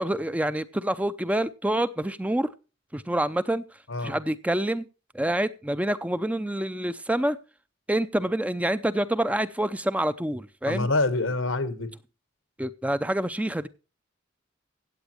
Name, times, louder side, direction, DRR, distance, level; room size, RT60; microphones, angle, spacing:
voice 1, 0.0-2.5 2.9-3.6 4.0-4.9 5.1-7.4 7.9-10.9 12.6-13.7, right 1 dB, 5° right, 0.5 m, -27 dB
voice 2, 10.7-11.9, left 2 dB, 85° left, 1.3 m, -26 dB
16.5 x 8.7 x 2.9 m
head